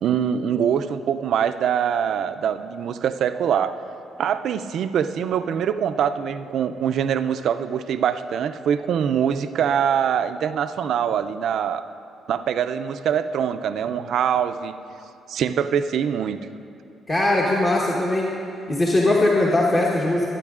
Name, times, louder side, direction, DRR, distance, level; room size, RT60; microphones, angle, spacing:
voice 1, 0.0-3.7 4.2-11.8 12.3-14.7 15.3-16.4, right 8 dB, 70° right, 10 dB, 0.4 m, -23 dB
voice 2, 17.1-18.3 18.7-20.3, left 2 dB, 35° left, -3 dB, 1.1 m, -20 dB
18.5 x 9.1 x 2.5 m, 2.6 s
cardioid pair, 90°, 0 cm